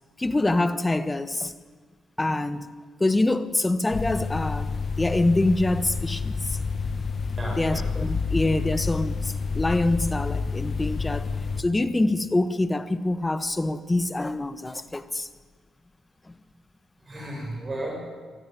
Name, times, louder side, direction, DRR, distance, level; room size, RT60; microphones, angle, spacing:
voice 1, 0.2-1.5 2.2-2.7 3.0-6.6 7.6-11.3 11.6-15.3 16.3-16.4, left 2 dB, 15° left, 1.4 m, -25 dB
sound 1, 3.9-11.6, left 4 dB, 40° left, 1.5 m, -29 dB
voice 2, 7.4-7.9 17.0-18.0, right 1 dB, 30° right, 7.8 m, -34 dB
23.5 x 14.0 x 9.4 m
cardioid pair, 90°, 0 cm